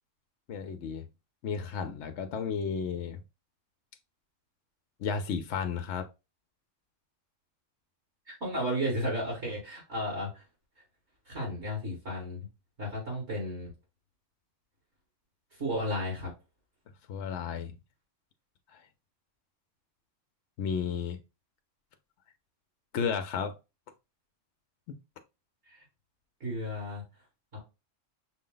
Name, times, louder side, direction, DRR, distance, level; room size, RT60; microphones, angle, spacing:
voice 1, 0.5-1.1 1.4-3.2 5.0-6.1 17.1-17.7 18.7-18.8 20.6-21.2 22.9-23.6, left 6 dB, 70° left, 0.8 m, -33 dB
voice 2, 8.4-10.4 11.3-12.4 12.8-13.7 15.6-16.3 25.7-25.8 26.4-27.0 27.5-27.6, equal, 60° right, 2.5 m, -33 dB
6.0 x 2.1 x 3.7 m
omnidirectional pair, 1.3 m